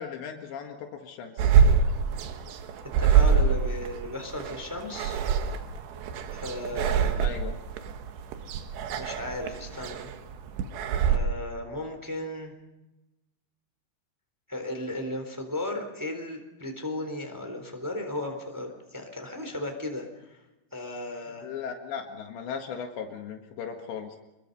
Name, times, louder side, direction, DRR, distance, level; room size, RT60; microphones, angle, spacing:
voice 1, 0.0-1.5 7.2-7.6 21.4-24.2, left 7 dB, 80° left, 3 dB, 3.9 m, -37 dB
sound 1, 1.4-11.2, right 7 dB, 75° right, 3.5 m, -25 dB
voice 2, 3.0-5.2 6.3-7.3 8.9-10.1 11.1-12.5 14.5-20.4 20.7-21.5, left 1 dB, 5° right, 4 dB, 3.0 m, -35 dB
27.5 x 22.0 x 5.4 m, 1.0 s
omnidirectional pair, 5.0 m